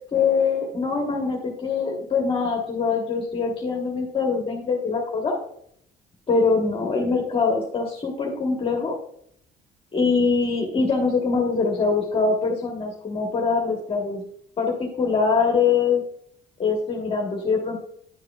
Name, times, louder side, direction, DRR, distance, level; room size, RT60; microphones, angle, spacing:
voice 1, 0.1-5.4 6.3-8.9 9.9-14.2 14.6-16.0 16.6-17.8, left 4 dB, 30° left, 0 dB, 1.3 m, -23 dB
10.5 x 4.8 x 2.3 m, 0.68 s
cardioid pair, 110°, 17 cm